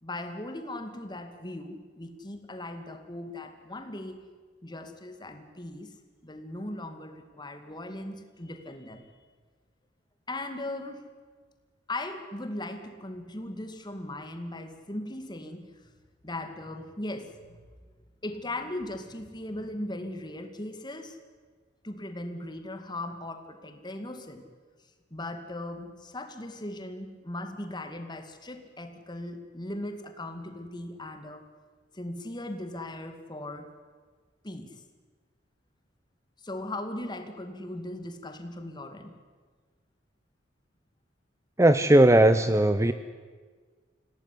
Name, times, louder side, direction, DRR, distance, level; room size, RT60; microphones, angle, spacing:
voice 1, 0.0-4.2 4.6-6.0 6.2-9.1 10.3-11.1 11.9-15.9 16.2-17.6 18.2-21.2 21.8-24.5 25.1-31.5 31.9-33.7 34.4-34.8 36.4-39.1, left 1 dB, 20° left, 7 dB, 2.2 m, -38 dB
voice 2, 41.6-42.9, right 1 dB, 15° right, 11 dB, 0.7 m, -18 dB
26.5 x 17.0 x 10.0 m, 1.5 s
head